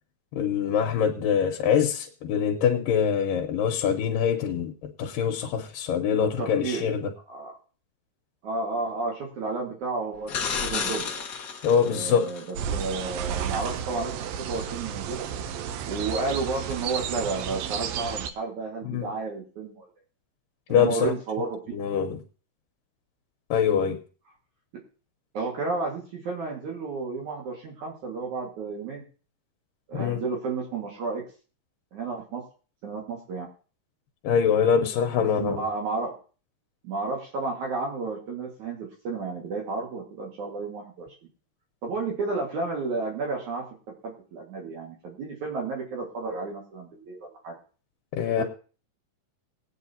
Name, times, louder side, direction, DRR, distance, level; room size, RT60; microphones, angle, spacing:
voice 1, 0.4-7.1 11.6-12.3 18.8-19.1 20.7-21.1 21.7-22.2 23.5-24.0 29.9-30.2 34.2-35.6 48.1-48.4, left 7 dB, 85° left, 3 dB, 2.5 m, -24 dB
voice 2, 6.2-6.9 7.3-7.5 8.4-11.1 11.8-12.4 12.7-14.1 14.5-15.3 15.9-19.9 20.7-21.8 25.3-29.0 29.9-31.2 31.9-32.4 32.8-33.5 35.2-36.2 36.8-41.1 41.8-43.6 44.0-47.5 48.4-48.5, right 3 dB, 65° right, -1 dB, 3.1 m, -32 dB
electric effects, 10.3-12.5 16.7-16.8, left 6 dB, 65° left, 0.8 m, -32 dB
sound 1, 12.6-18.3, right 8 dB, 80° right, 1.5 m, -32 dB
21.0 x 9.0 x 2.8 m, 0.38 s
omnidirectional pair, 3.9 m